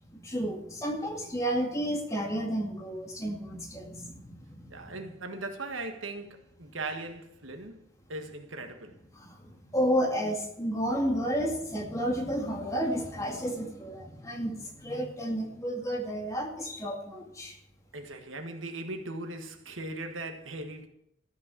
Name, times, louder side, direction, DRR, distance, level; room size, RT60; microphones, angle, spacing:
voice 1, 0.1-4.8 9.1-17.6, equal, 15° left, 2.1 m, -31 dB
voice 2, 4.7-7.8 8.1-8.9 17.9-20.9, right 2 dB, 90° right, 1.6 m, -39 dB
14.0 x 6.4 x 8.4 m
head